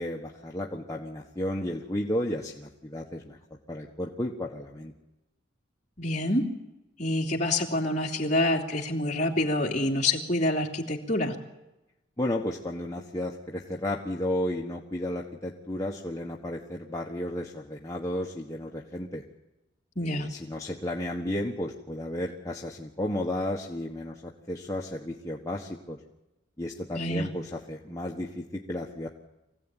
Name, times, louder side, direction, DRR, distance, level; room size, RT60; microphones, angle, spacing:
voice 1, 0.0-3.4 3.7-4.9 12.2-19.2 20.0-26.0 26.6-29.1, left 1 dB, 15° left, -2 dB, 1.4 m, -33 dB
voice 2, 6.0-6.5 7.0-11.3 20.0-20.3 26.9-27.3, left 1 dB, 40° left, -2 dB, 3.1 m, -27 dB
24.5 x 16.5 x 9.1 m, 0.98 s
head